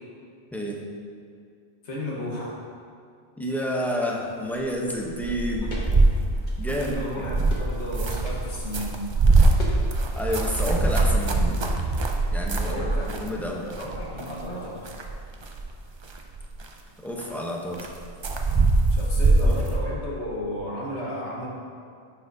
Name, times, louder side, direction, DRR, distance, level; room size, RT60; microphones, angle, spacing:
voice 1, 0.5-0.8 3.4-5.8 6.6-7.3 10.1-11.6 12.3-12.7 13.1-13.7 17.0-17.9 19.4-19.6, equal, ahead, -2 dB, 0.6 m, -29 dB
voice 2, 1.8-2.6 6.8-9.0 12.6-13.2 13.8-14.9 18.9-21.5, left 1 dB, 85° left, -4 dB, 1.6 m, -33 dB
sound 1, 5.1-13.4 13.7-14.5 14.8-15.7 16.0-16.7 17.2-17.3 17.7-19.8, right 2 dB, 50° right, 0.3 m, -23 dB
sound 2, 5.7-5.9 6.3-7.0 7.5-7.8 9.6-9.8 10.1-10.6 11.6-11.8, left 1 dB, 45° left, 1.2 m, -40 dB
10.0 x 5.8 x 2.7 m, 2.3 s
omnidirectional pair, 1.1 m